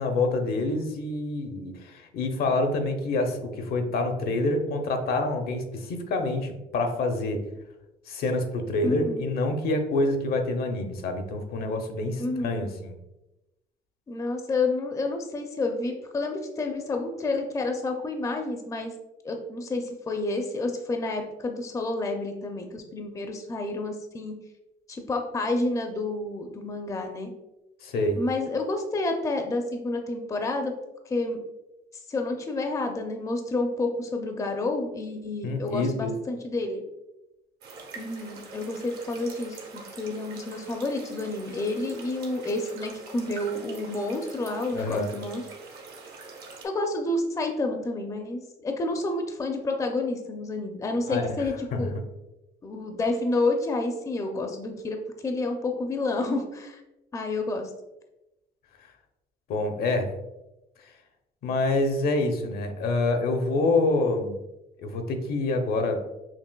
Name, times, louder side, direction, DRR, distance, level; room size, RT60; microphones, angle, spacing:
voice 1, 0.0-7.5 8.1-12.9 27.8-28.2 35.4-36.1 44.7-45.1 51.1-51.3 51.7-51.9 59.5-60.1 61.4-64.4 64.8-66.0, left 2 dB, 65° left, 5 dB, 0.7 m, -27 dB
voice 2, 8.8-9.2 12.2-12.5 14.1-18.9 19.2-24.3 24.9-27.3 28.2-30.7 31.1-31.4 32.1-36.8 38.0-45.4 46.6-51.9 52.6-55.0 55.2-56.8 57.1-57.7, left 2 dB, 20° left, 4 dB, 0.5 m, -29 dB
sound 1, 37.6-46.6, right 4 dB, 70° right, 1.0 m, -44 dB
5.9 x 2.5 x 2.2 m, 0.94 s
cardioid pair, 110°, 17 cm